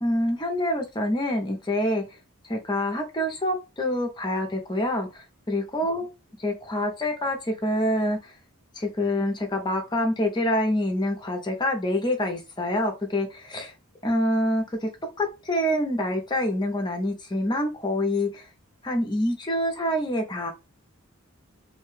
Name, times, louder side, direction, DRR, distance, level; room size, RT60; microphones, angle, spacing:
voice 1, 0.0-2.0 2.5-6.1 6.4-8.3 8.7-13.7 14.0-14.9 15.2-18.5 18.8-20.5, left 1 dB, 20° left, 4 dB, 0.6 m, -26 dB
2.6 x 2.2 x 3.2 m, 0.27 s
head